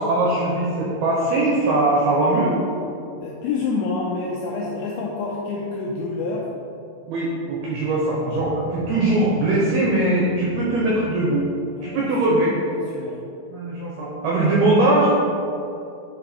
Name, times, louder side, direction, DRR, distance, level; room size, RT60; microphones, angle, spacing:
voice 1, 0.0-2.6 7.1-11.5 11.8-12.5 13.5-15.1, right 2 dB, 90° right, -5 dB, 2.2 m, -21 dB
voice 2, 3.2-6.5 11.8-13.2, left 3 dB, 90° left, -3 dB, 2.6 m, -28 dB
sound 1, 8.3-12.0, left 2 dB, 70° left, 2.8 m, -41 dB
8.7 x 4.1 x 4.3 m, 2.7 s
omnidirectional pair, 5.9 m